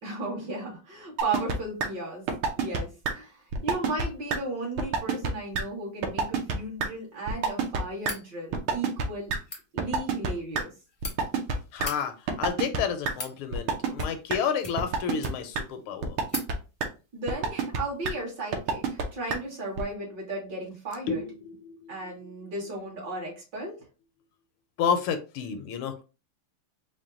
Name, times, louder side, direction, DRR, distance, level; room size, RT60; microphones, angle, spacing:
voice 1, 0.0-2.3 2.6-9.3 9.7-10.7 17.1-21.2 21.9-23.8, right 2 dB, 55° right, -2 dB, 2.1 m, -35 dB
sound 1, 1.2-1.6 1.8-1.9 2.3-2.8 3.0-3.1 3.5-4.1 4.3-4.4 4.8-5.3 5.5-5.6 6.0-6.5 6.8-6.9 7.3-7.8 8.1-8.2 8.5-9.4 9.8-10.6 11.0-11.9 12.3-12.8 13.0-13.1 13.5-14.0 14.3-14.4 14.8-15.3 15.5-15.6 16.0-16.5 16.8-16.9 17.3-17.8 18.0-18.1 18.5-19.0 19.3-19.4 19.8-19.9, right 5 dB, 80° right, 1.6 m, -26 dB
sound 2, 8.0-8.3 9.3-9.6 10.6-11.1 11.7-12.0 12.8-13.4 13.9-14.3 14.6-15.6 15.9-16.0 16.3-16.5, left 2 dB, 35° left, 0.5 m, -39 dB
voice 2, 11.7-16.2 21.1-22.3 24.8-26.0, left 7 dB, 80° left, 8 dB, 1.4 m, -31 dB
4.4 x 2.1 x 3.6 m, 0.32 s
omnidirectional pair, 2.4 m